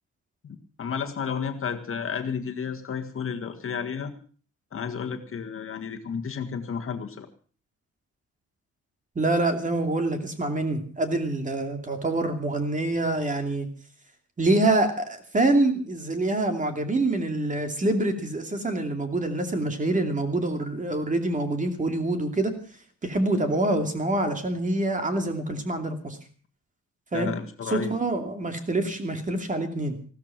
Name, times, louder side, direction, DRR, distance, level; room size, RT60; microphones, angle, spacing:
voice 1, 0.4-4.1 4.7-7.3 27.1-27.9, left 6 dB, 45° left, 5 dB, 1.7 m, -32 dB
voice 2, 9.1-13.7 14.4-22.5 23.0-26.2 27.1-27.3 27.7-29.9, right 2 dB, 25° right, 6 dB, 2.7 m, -26 dB
16.0 x 13.5 x 6.0 m, 0.42 s
cardioid pair, 130°, 29 cm